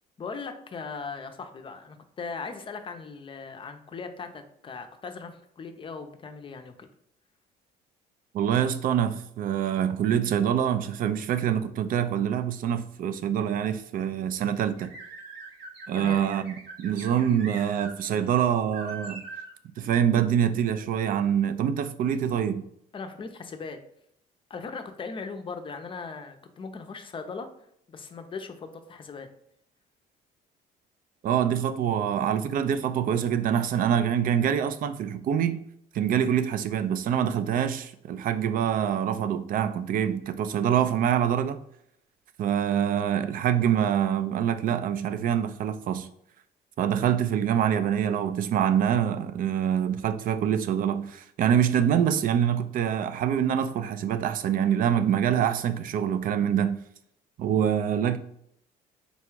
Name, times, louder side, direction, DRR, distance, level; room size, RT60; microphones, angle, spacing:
voice 1, 0.2-6.9 15.9-16.2 22.9-23.8 24.5-27.5 27.9-29.3, left 4 dB, 30° left, 0.5 m, -39 dB
voice 2, 8.3-14.9 15.9-19.2 19.8-22.6 31.2-35.6 35.9-41.6 42.4-46.1 46.8-56.8 57.4-58.2, right 9 dB, 55° right, 0.4 m, -25 dB
sound 1, 14.6-17.9 18.3-18.4 18.7-19.5, right 3 dB, 80° right, 1.1 m, -42 dB
4.1 x 2.3 x 4.5 m
cardioid pair, 110°, 17 cm